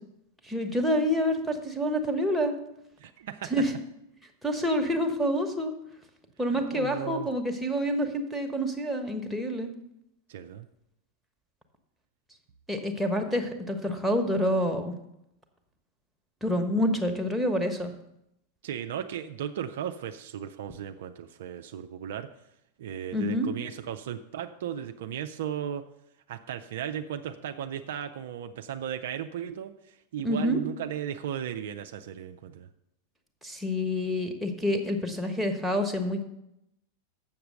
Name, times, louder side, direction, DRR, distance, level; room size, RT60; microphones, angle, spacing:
voice 1, 0.4-2.5 3.5-3.7 4.4-5.7 6.4-9.7 12.7-14.9 16.4-17.9 23.1-23.5 30.2-30.6 33.4-36.2, equal, ahead, 2 dB, 1.2 m, -27 dB
voice 2, 3.0-3.5 6.5-7.3 10.3-10.7 18.6-22.3 22.8-25.8 26.3-32.7, right 9 dB, 55° right, 8 dB, 0.4 m, -36 dB
7.2 x 6.8 x 6.5 m, 0.83 s
figure-of-eight pair, 90°, 0 cm